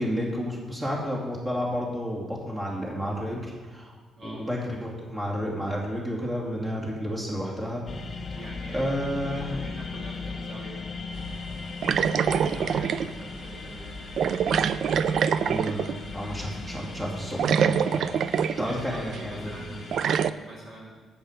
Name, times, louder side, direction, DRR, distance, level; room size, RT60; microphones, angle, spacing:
voice 1, 0.0-4.0 4.2-7.8 8.3-8.4 8.7-9.6 15.3-15.9 16.1-18.1 18.6-19.8, equal, 20° right, -3 dB, 2.6 m, -31 dB
sound 1, 7.9-20.1, left 4 dB, 40° left, 1.2 m, -38 dB
voice 2, 8.3-8.9 9.2-10.9 12.3-13.9 18.6-21.1, right 2 dB, 45° right, -3 dB, 1.9 m, -44 dB
sound 2, 11.8-13.1 14.2-16.1 17.1-17.2 17.4-18.8 19.1-19.2 19.9-20.3, right 7 dB, 65° right, 0.3 m, -24 dB
8.5 x 8.0 x 5.1 m, 1.4 s
cardioid pair, 90°, 0 cm